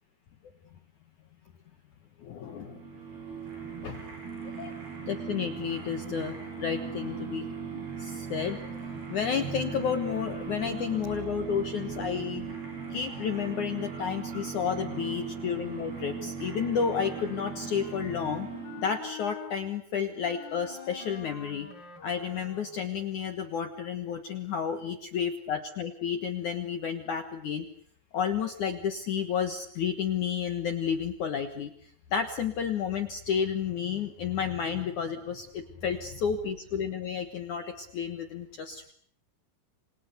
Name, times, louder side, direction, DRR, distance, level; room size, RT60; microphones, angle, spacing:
voice 1, 2.2-2.8 3.8-4.0 4.4-4.7 5.1-7.5 8.0-12.4 12.9-18.5 18.8-21.7 22.0-27.7 28.1-38.9, left 7 dB, 85° left, 8 dB, 1.7 m, -31 dB
sound 1, 2.4-19.1, right 6 dB, 50° right, 8.5 m, -38 dB
Wind instrument woodwind instrument, 16.3-19.6 20.2-23.0, left 7 dB, 30° left, 2.4 m, -47 dB
27.5 x 27.5 x 6.9 m, 0.63 s
omnidirectional pair, 5.9 m